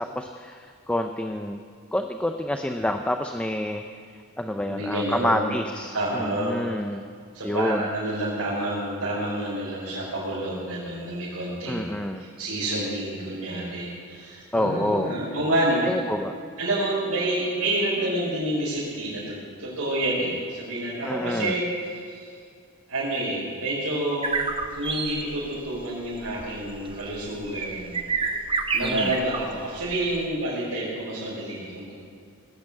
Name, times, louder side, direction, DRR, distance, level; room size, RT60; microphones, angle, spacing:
voice 1, 0.0-1.6 1.9-3.8 4.4-7.1 7.4-7.9 11.7-12.3 14.5-15.1 15.8-16.4 21.0-21.6 28.8-29.2, left 1 dB, 5° left, 5 dB, 0.5 m, -28 dB
voice 2, 4.7-5.4 5.9-6.6 7.3-15.9 16.6-19.3 19.6-21.6 21.9-22.3 22.9-24.4 24.7-28.1 28.7-31.9, right 1 dB, 85° right, -8 dB, 4.9 m, -28 dB
sound 1, 24.2-30.3, right 4 dB, 25° right, 0.9 m, -29 dB
18.5 x 8.6 x 8.4 m, 2.2 s
head